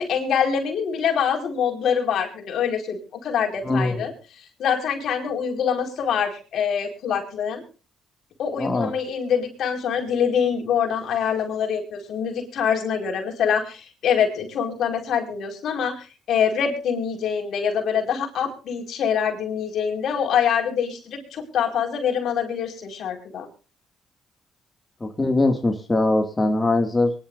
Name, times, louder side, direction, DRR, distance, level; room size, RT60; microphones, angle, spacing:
voice 1, 0.0-4.1 4.6-7.6 8.4-23.5, left 7 dB, 70° left, 2 dB, 4.9 m, -25 dB
voice 2, 3.6-4.0 8.6-8.9 25.0-27.1, left 2 dB, 20° left, 3 dB, 2.2 m, -21 dB
23.5 x 11.5 x 2.6 m, 0.35 s
cardioid pair, 90°, 0 cm